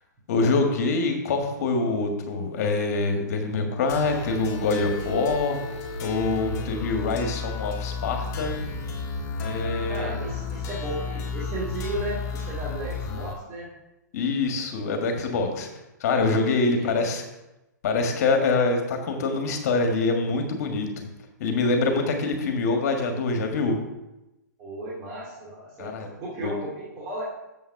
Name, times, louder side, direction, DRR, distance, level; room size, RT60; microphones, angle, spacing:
voice 1, 0.3-5.6 6.0-8.6 9.4-10.1 14.1-15.7 16.0-17.2 17.8-21.1 21.4-23.8 25.8-26.1 26.4-26.5, left 3 dB, 55° left, 4 dB, 1.7 m, -25 dB
sound 1, 3.9-13.3, left 4 dB, 30° left, 1.9 m, -33 dB
voice 2, 9.9-13.7 16.7-16.9 17.1-17.2 24.6-25.9 26.2-27.2, right 1 dB, 30° right, -6 dB, 2.3 m, -34 dB
7.3 x 5.7 x 5.9 m, 0.97 s
hypercardioid pair, 125°, 10 cm